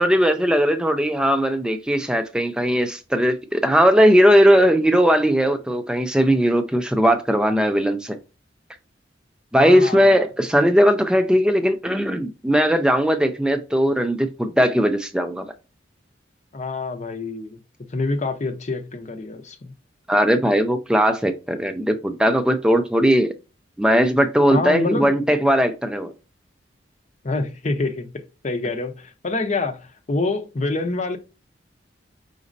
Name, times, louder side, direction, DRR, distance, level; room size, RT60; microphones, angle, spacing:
voice 1, 0.0-8.2 9.5-15.5 20.1-23.3 23.8-26.1, equal, 5° right, 0.3 m, -18 dB
voice 2, 9.6-10.2 16.5-19.7 24.5-25.2 27.2-28.1 28.4-31.2, left 3 dB, 40° left, 0.6 m, -26 dB
5.1 x 4.0 x 2.6 m
head